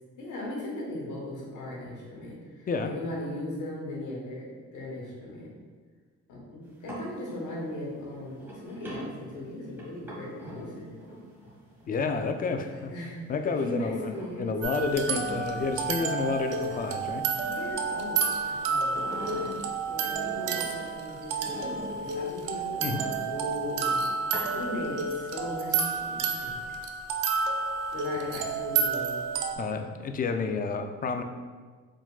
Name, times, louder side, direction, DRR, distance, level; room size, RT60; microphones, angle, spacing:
voice 1, 0.2-5.5 6.3-10.9 12.7-13.2 13.5-14.5 17.5-24.1 24.5-26.6 27.9-29.2, left 1 dB, 85° left, -3 dB, 1.3 m, -38 dB
sound 1, 6.6-13.1 13.4-16.3 16.6-18.4 18.8-20.9 21.4-23.6 24.2-25.1 25.5-26.1, right 1 dB, 5° right, 1.3 m, -44 dB
voice 2, 11.9-12.9 13.3-14.1 14.4-17.2 22.8-23.0 29.6-31.2, left 4 dB, 30° left, 7 dB, 0.3 m, -30 dB
sound 2, 14.6-29.5, right 5 dB, 90° right, 0.5 m, -30 dB
4.8 x 3.6 x 2.3 m, 1.5 s
cardioid pair, 90°, 30 cm